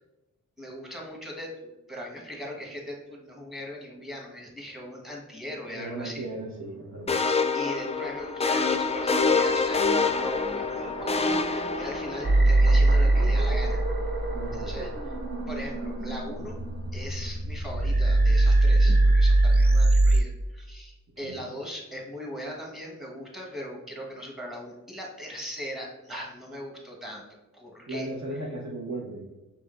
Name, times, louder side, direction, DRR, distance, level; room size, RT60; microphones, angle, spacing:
voice 1, 0.6-1.5 1.9-6.2 7.2-13.8 14.5-15.2 15.5-16.6 16.9-27.2 27.5-28.1, equal, ahead, -1 dB, 1.4 m, -39 dB
voice 2, 5.7-7.2 14.3-14.8 21.2-21.4 27.9-29.2, right 2 dB, 55° right, -2 dB, 1.1 m, -36 dB
sound 1, 6.5-17.2, right 2 dB, 80° right, 1.3 m, -41 dB
sound 2, 7.1-12.4, left 4 dB, 20° left, 0.4 m, -26 dB
sound 3, 12.2-20.2, right 2 dB, 30° right, 0.6 m, -22 dB
5.0 x 3.5 x 2.5 m, 1.0 s
cardioid pair, 60°, 32 cm